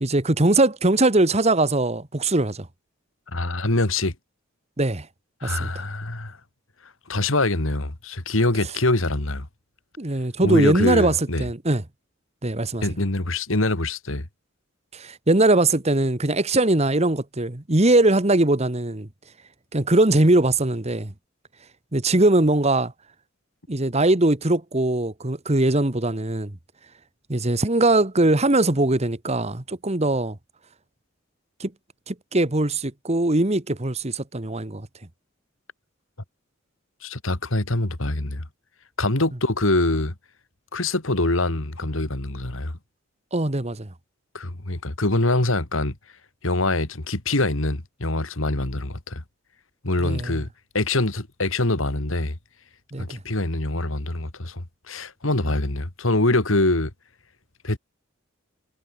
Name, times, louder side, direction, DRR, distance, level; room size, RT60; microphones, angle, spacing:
voice 1, 0.0-2.7 4.8-5.1 5.4-5.8 10.0-11.8 12.4-12.8 14.9-19.1 19.7-21.1 21.9-22.9 23.7-26.5 27.3-30.4 31.6-31.7 32.1-34.9 43.3-43.9 50.0-50.4 52.9-53.2, right 2 dB, 30° right, 1.5 m, -21 dB
voice 2, 3.3-4.1 5.4-6.4 7.1-9.5 10.4-11.5 12.8-14.3 37.0-38.4 39.0-40.1 40.7-42.7 44.3-45.9 46.4-49.2 49.8-50.5 50.7-52.3 53.0-56.9 57.6-57.8, left 2 dB, 75° left, 2.5 m, -24 dB
head